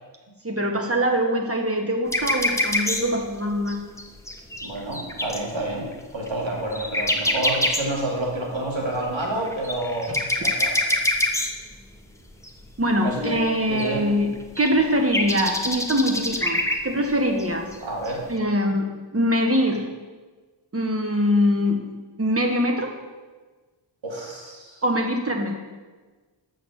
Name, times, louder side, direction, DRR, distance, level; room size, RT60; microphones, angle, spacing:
voice 1, 0.4-3.8 10.1-10.2 12.8-14.3 14.6-17.7 18.3-19.8 20.7-21.8 22.2-22.9 24.8-25.6, equal, 30° right, 2 dB, 1.5 m, -23 dB
sound 1, 2.1-3.2 3.7-5.4 5.9-6.0 6.3-6.4 6.5-8.2 9.0-11.7 12.4-12.5 13.1-13.2 13.3-13.9 14.3-14.7 15.0-16.8 17.1-17.2 17.4-17.5 17.7-17.8 18.0-18.1, left 1 dB, 5° left, 1.0 m, -25 dB
voice 2, 4.6-10.1 10.4-10.7 13.0-13.4 13.6-14.1 17.8-18.2 24.0-24.8, right 1 dB, 70° right, -2 dB, 2.5 m, -29 dB
7.0 x 6.5 x 7.2 m, 1.3 s
wide cardioid pair, 70°, 48 cm